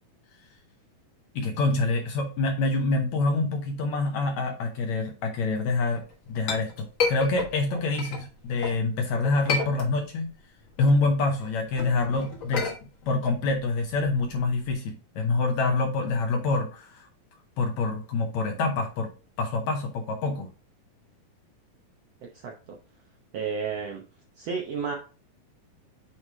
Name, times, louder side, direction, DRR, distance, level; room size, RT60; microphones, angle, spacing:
voice 1, 1.4-6.0 6.3-10.3 10.8-12.7 13.1-17.1 17.6-19.1 19.4-20.5, left 3 dB, 70° left, 3 dB, 1.8 m, -26 dB
Chink clink, 5.9-8.8 9.2-10.3 10.6-14.7, left 4 dB, 55° left, 1.3 m, -32 dB
voice 2, 23.3-24.0 24.4-24.9, right 5 dB, 85° right, 0 dB, 1.4 m, -31 dB
8.8 x 3.2 x 3.5 m, 0.35 s
omnidirectional pair, 4.2 m